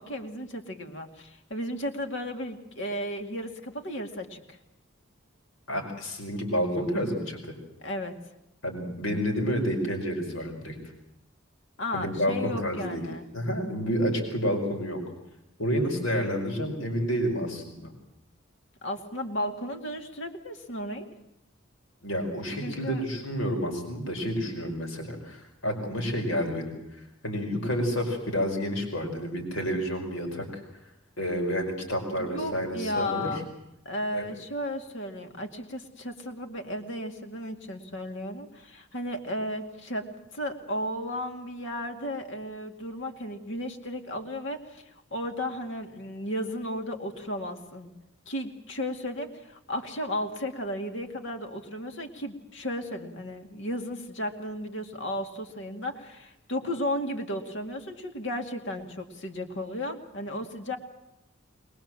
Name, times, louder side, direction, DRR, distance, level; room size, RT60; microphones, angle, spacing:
voice 1, 0.0-4.6 7.8-8.1 11.8-13.3 18.8-21.1 22.6-23.0 32.2-33.5 33.9-40.1 40.3-47.9 48.3-60.8, left 1 dB, 65° left, 4 dB, 2.4 m, -34 dB
voice 2, 5.7-7.4 8.6-10.7 11.9-13.0 13.3-15.0 15.6-17.9 22.0-30.6 31.2-33.3 34.1-34.2, equal, 90° left, 3 dB, 5.1 m, -29 dB
22.0 x 22.0 x 7.6 m, 0.86 s
head